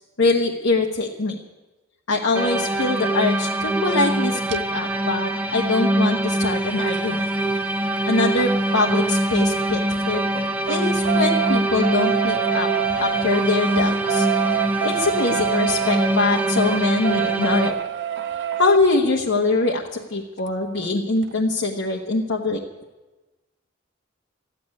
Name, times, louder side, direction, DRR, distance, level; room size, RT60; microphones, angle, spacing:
voice 1, 0.2-1.4 2.1-7.3 8.1-9.8 10.1-10.3 10.7-12.7 13.0-14.3 14.8-17.7 18.6-22.6, left 3 dB, 80° left, 0 dB, 1.2 m, -23 dB
sound 1, 2.3-17.7, right 1 dB, 10° right, 0.8 m, -23 dB
sound 2, 4.5-4.6 6.2-9.8 10.1-18.8 20.5-20.6 20.8-20.9 21.2-21.3, right 10 dB, 60° right, 0.5 m, -27 dB
14.0 x 8.6 x 9.7 m, 1.2 s
head